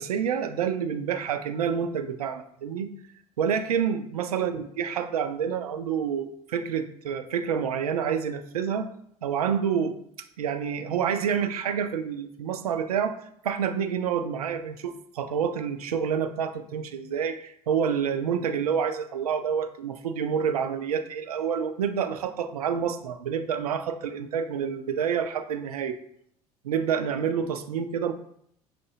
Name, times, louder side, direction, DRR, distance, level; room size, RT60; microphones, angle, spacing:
voice 1, 0.0-2.9 3.4-8.9 9.2-10.0 10.4-13.2 13.4-26.0 26.6-28.1, right 7 dB, 75° right, 8 dB, 0.4 m, -28 dB
5.7 x 2.6 x 2.7 m, 0.69 s
figure-of-eight pair, 60°, 19 cm